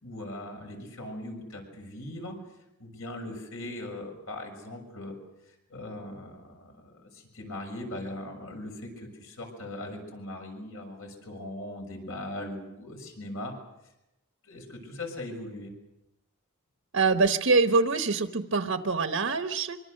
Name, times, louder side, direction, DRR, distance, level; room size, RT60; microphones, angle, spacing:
voice 1, 0.0-2.4 2.8-5.1 5.7-13.5 14.4-15.7, left 1 dB, 65° left, 3 dB, 6.6 m, -39 dB
voice 2, 16.9-19.8, right 4 dB, 60° right, 7 dB, 1.2 m, -24 dB
25.0 x 24.5 x 6.6 m, 0.90 s
head